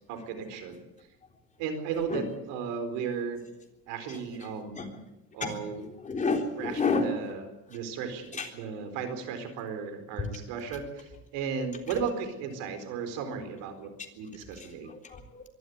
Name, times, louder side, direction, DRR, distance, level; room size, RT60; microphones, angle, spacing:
voice 1, 0.1-0.8 1.6-3.5 3.9-5.0 5.3-5.8 6.6-7.4 7.7-14.9, right 6 dB, 80° right, 8 dB, 4.5 m, -35 dB
voice 2, 4.1-4.9 5.4-5.6 5.9-7.1 7.7-7.8 8.3-8.5 10.2-10.3 14.5-15.5, left 4 dB, 25° left, 3 dB, 3.7 m, -31 dB
23.5 x 12.5 x 9.6 m, 0.96 s
cardioid pair, 125°, 30 cm